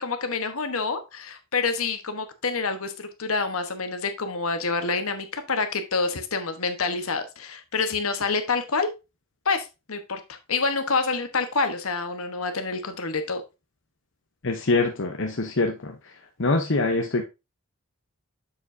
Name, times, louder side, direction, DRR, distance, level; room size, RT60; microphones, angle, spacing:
voice 1, 0.0-8.9 9.4-13.4, left 4 dB, 75° left, 1.1 m, -27 dB
voice 2, 14.4-16.1 16.4-17.2, left 3 dB, 55° left, 0.8 m, -24 dB
7.1 x 6.9 x 2.6 m
head